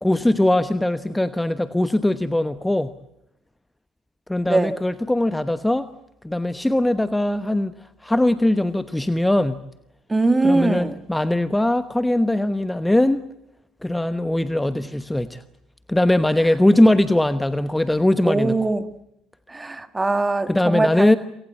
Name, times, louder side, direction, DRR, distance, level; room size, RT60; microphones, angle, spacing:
voice 1, 0.0-2.9 4.3-5.9 6.2-7.7 8.0-9.6 10.4-13.2 13.8-15.4 15.9-18.6 20.5-21.2, left 1 dB, 10° left, 13 dB, 1.1 m, -20 dB
voice 2, 4.4-4.8 10.1-11.0 18.2-18.9 19.5-21.1, right 2 dB, 20° right, 11 dB, 1.9 m, -21 dB
28.5 x 18.5 x 8.4 m, 0.83 s
hypercardioid pair, 60°, 0 cm